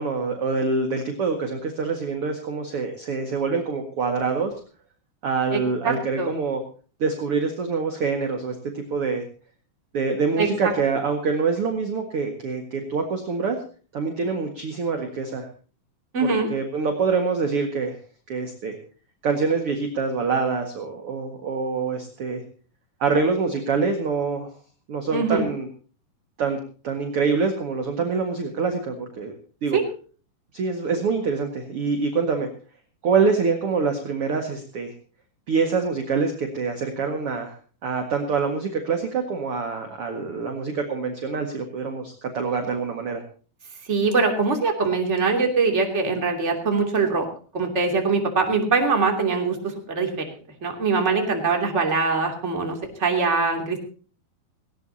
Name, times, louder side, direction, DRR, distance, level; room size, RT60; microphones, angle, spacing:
voice 1, 0.0-4.5 5.2-6.6 7.0-9.2 9.9-13.6 13.9-15.5 16.2-18.0 18.3-18.7 19.2-22.4 23.0-24.5 24.9-25.7 26.4-26.6 26.8-29.8 30.5-32.5 33.0-34.9 35.5-37.6 37.8-43.2, right 4 dB, 45° right, 4 dB, 2.3 m, -25 dB
voice 2, 5.8-6.3 10.4-10.5 16.1-16.5 25.1-25.5 29.7-29.8 43.9-47.2 47.5-50.2 50.6-53.8, right 4 dB, 20° right, 3 dB, 2.8 m, -22 dB
18.5 x 18.0 x 2.8 m, 0.39 s
omnidirectional pair, 4.3 m